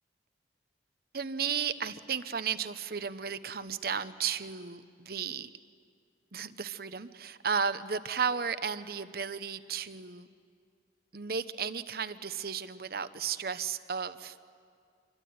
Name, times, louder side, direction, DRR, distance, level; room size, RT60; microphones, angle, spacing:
voice 1, 1.1-5.5 6.3-10.3 11.1-14.4, right 6 dB, 60° right, 12 dB, 1.0 m, -34 dB
26.5 x 23.0 x 9.5 m, 2.2 s
head